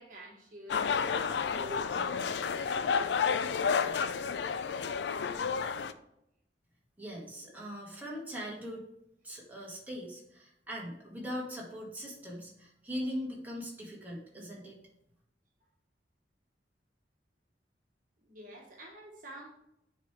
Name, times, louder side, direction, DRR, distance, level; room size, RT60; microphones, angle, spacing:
voice 1, 0.0-3.3 18.2-19.5, right 1 dB, 50° right, -1 dB, 1.3 m, -48 dB
sound 1, 0.7-5.9, left 6 dB, 75° left, 0.4 m, -31 dB
voice 2, 7.0-8.8 9.2-14.8, equal, 10° right, -4 dB, 1.7 m, -40 dB
9.2 x 3.3 x 4.5 m, 0.80 s
head